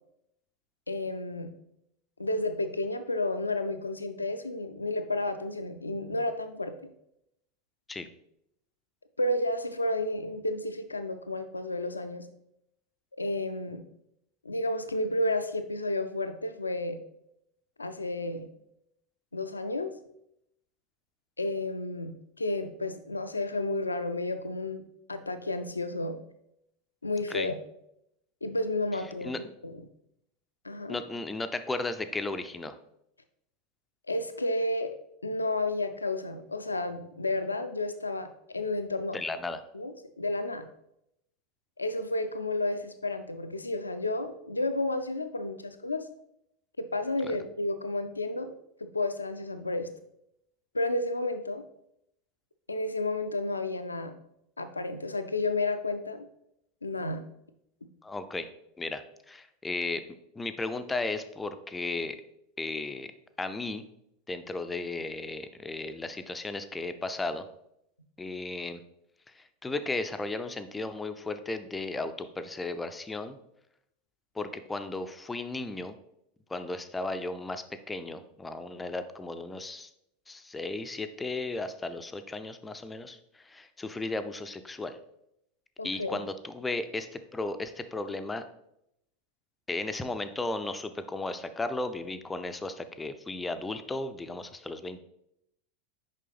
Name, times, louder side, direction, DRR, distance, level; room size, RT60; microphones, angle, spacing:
voice 1, 0.9-1.5 2.2-6.7 9.2-12.3 13.2-13.8 14.4-17.0 17.8-18.5 19.3-19.9 21.4-24.8 25.1-26.2 27.0-27.6 28.4-29.3 29.6-29.8 30.6-31.0 34.1-34.9 35.2-39.2 39.7-40.7 41.8-46.0 46.8-48.5 48.8-49.9 50.7-51.6 52.7-54.1 54.6-56.3 56.8-57.2 85.8-86.2, left 2 dB, 80° left, 9 dB, 0.4 m, -31 dB
voice 2, 30.9-32.7 39.1-39.6 47.2-47.4 58.0-58.5 58.8-59.0 59.3-60.0 60.4-62.2 62.6-63.1 63.4-63.8 64.3-67.4 68.2-68.8 69.4-73.4 74.4-76.0 76.5-79.9 80.3-85.0 85.8-88.4 89.7-95.0, left 2 dB, 10° left, 9 dB, 0.4 m, -35 dB
6.6 x 5.3 x 3.4 m, 0.80 s
figure-of-eight pair, 85°, 0 cm